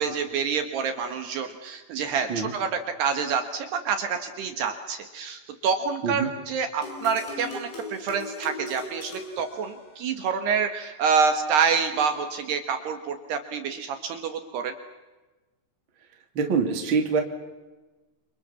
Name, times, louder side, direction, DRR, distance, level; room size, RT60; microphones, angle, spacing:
voice 1, 0.0-14.7, right 6 dB, 65° right, 7 dB, 3.4 m, -27 dB
sound 1, 6.8-10.3, left 2 dB, 70° left, 8.2 m, -39 dB
voice 2, 16.3-17.2, right 5 dB, 30° right, 4 dB, 2.8 m, -24 dB
30.0 x 26.5 x 7.1 m, 1.2 s
omnidirectional pair, 5.6 m